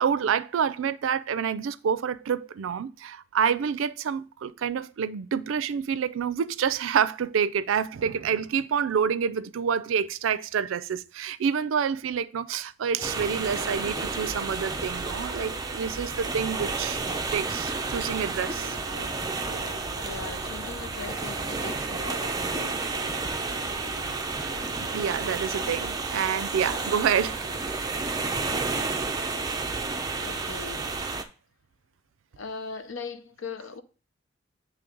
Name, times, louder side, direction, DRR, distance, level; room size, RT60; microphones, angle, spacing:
voice 1, 0.0-17.0 17.3-18.8 24.8-27.4, right 7 dB, 90° right, 0.4 m, -28 dB
sound 1, 12.9-17.7 18.3-27.7, left 1 dB, 60° left, 1.0 m, -46 dB
sound 2, 13.0-31.2, right 3 dB, 20° right, 0.5 m, -31 dB
voice 2, 20.0-23.0 28.5-28.7 29.0-29.3 30.2-30.9 32.4-33.8, left 4 dB, 80° left, 0.6 m, -40 dB
8.4 x 3.2 x 3.8 m
head